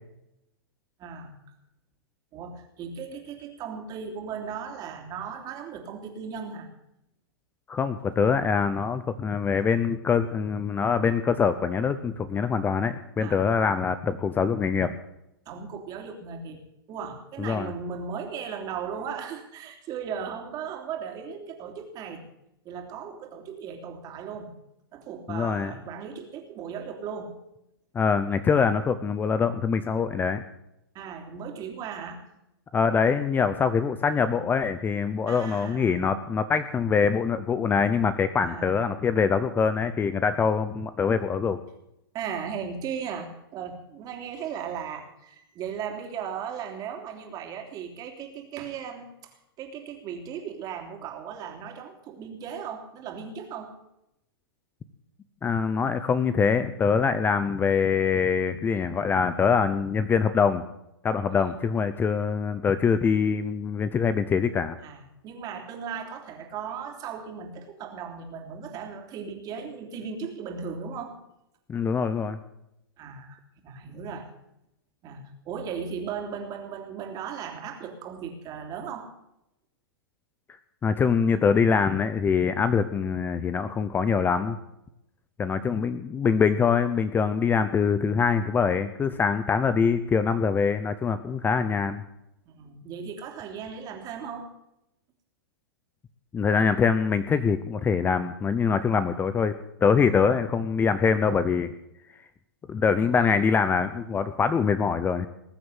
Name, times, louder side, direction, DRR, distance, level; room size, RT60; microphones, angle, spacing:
voice 1, 1.0-1.3 2.3-6.7 13.2-13.4 15.4-16.6 16.9-22.2 22.6-24.5 24.9-27.3 30.9-32.2 35.3-36.1 38.4-38.8 42.1-53.7 64.8-71.2 73.0-74.3 75.0-79.1 92.4-94.5, right 7 dB, 30° right, 3 dB, 3.2 m, -37 dB
voice 2, 7.7-14.9 17.4-17.7 25.3-25.7 27.9-30.4 32.7-41.6 55.4-60.6 61.0-64.8 71.7-72.4 80.8-84.6 85.4-92.0 96.3-99.5 99.8-101.7 102.7-105.3, left 6 dB, 15° left, 12 dB, 0.7 m, -24 dB
20.0 x 7.7 x 8.2 m, 0.85 s
hypercardioid pair, 130°, 12 cm